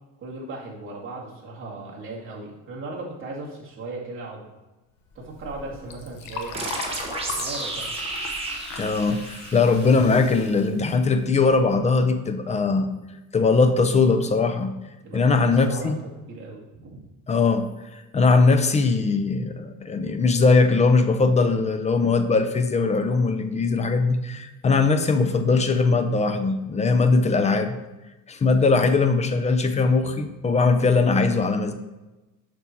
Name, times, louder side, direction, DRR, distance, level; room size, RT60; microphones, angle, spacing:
voice 1, 0.2-4.4 5.1-6.8 7.3-7.9 15.0-17.0, right 2 dB, 35° right, -4 dB, 2.3 m, -37 dB
Liquid, 5.1-11.8, left 4 dB, 85° left, 1.1 m, -39 dB
sound 1, 6.5-10.0, right 3 dB, 15° right, 1.2 m, -32 dB
voice 2, 8.8-12.9 13.3-14.7 15.1-16.0 17.3-17.7 18.1-27.7 28.3-31.7, left 4 dB, 20° left, 8 dB, 0.5 m, -20 dB
7.1 x 6.0 x 4.5 m, 1.1 s
cardioid pair, 155°, 34 cm